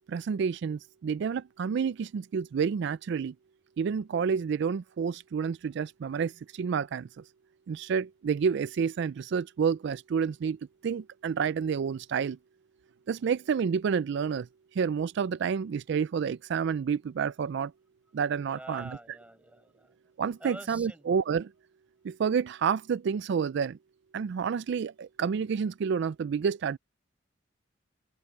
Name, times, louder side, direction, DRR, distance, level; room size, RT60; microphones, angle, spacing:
voice 1, 0.1-3.3 3.8-7.2 7.7-12.4 13.1-14.5 14.7-17.7 18.1-18.9 20.2-21.5 22.0-23.8 24.1-26.8, right 6 dB, 65° right, 0.3 m, -29 dB
voice 2, 18.4-19.9 20.4-21.1, right 1 dB, 5° right, 6.7 m, -46 dB
head